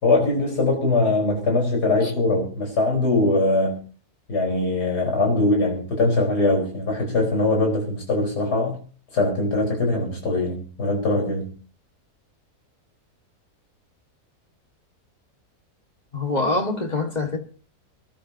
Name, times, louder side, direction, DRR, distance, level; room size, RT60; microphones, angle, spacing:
voice 1, 0.0-3.8 4.3-8.8 9.1-11.6, left 2 dB, 85° left, 5.1 m, -22 dB
voice 2, 16.1-17.4, left 2 dB, 25° left, 1.8 m, -24 dB
24.5 x 12.0 x 2.8 m
omnidirectional pair, 1.7 m